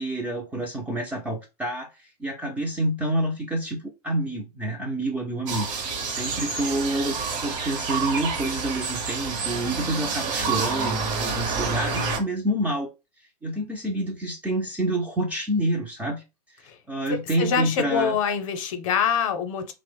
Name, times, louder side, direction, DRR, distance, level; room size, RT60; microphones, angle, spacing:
voice 1, 0.0-1.9 2.2-3.8 4.0-7.2 7.4-12.9 13.4-16.2 16.9-18.2, right 1 dB, 5° right, 0.3 m, -28 dB
sound 1, 5.5-12.2, right 4 dB, 50° right, 0.7 m, -28 dB
voice 2, 17.1-19.7, left 7 dB, 55° left, 0.6 m, -25 dB
2.9 x 2.0 x 3.1 m
hypercardioid pair, 130°, 20 cm